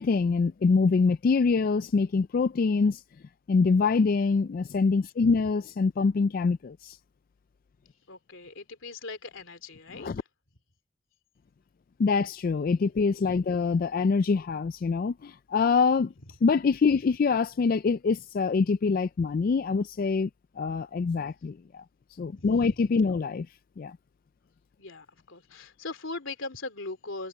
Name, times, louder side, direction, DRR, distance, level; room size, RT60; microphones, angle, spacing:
voice 1, 0.0-3.0 3.5-7.0 9.9-10.2 12.0-16.1 16.4-20.3 20.6-21.8 22.2-23.5 23.8-24.0, left 4 dB, 45° left, 0.3 m, -25 dB
voice 2, 8.1-10.1 16.9-17.0 22.4-22.8 23.1-23.2 24.8-27.3, left 3 dB, 70° left, 3.0 m, -40 dB
head